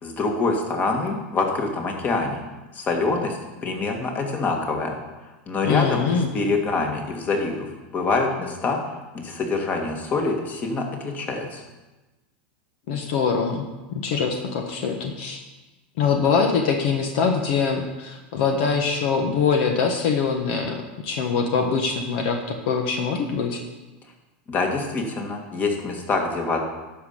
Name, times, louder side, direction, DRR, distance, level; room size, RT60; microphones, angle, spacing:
voice 1, 0.0-2.4 2.7-5.0 5.5-8.8 9.1-11.6 24.5-26.6, left 3 dB, 30° left, 2 dB, 2.0 m, -25 dB
voice 2, 5.6-6.3 12.9-13.6 13.9-15.4 16.0-23.6, left 5 dB, 65° left, 4 dB, 1.3 m, -23 dB
11.5 x 5.8 x 6.7 m, 1.1 s
supercardioid pair, 120°, 6 cm